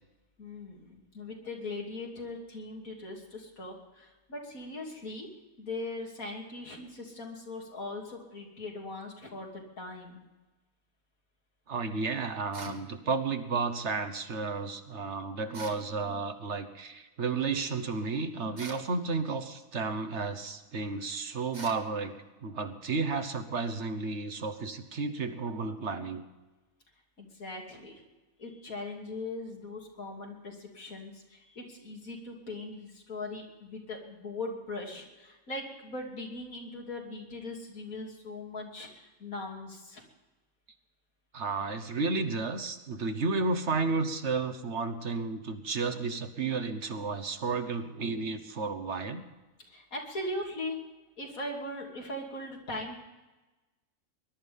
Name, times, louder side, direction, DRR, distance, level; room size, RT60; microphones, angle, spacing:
voice 1, 0.4-5.3 5.6-10.3 27.2-28.0 28.4-40.0 49.7-50.8 51.2-53.0, left 2 dB, 80° left, 0 dB, 3.3 m, -40 dB
voice 2, 11.7-22.1 22.4-26.2 41.3-49.2, right 4 dB, 55° right, 8 dB, 1.4 m, -32 dB
sound 1, 12.5-12.8 15.5-15.9 18.6-18.9 21.5-21.9, right 2 dB, 30° right, 1.5 m, -44 dB
20.5 x 12.0 x 5.4 m, 1.1 s
omnidirectional pair, 1.4 m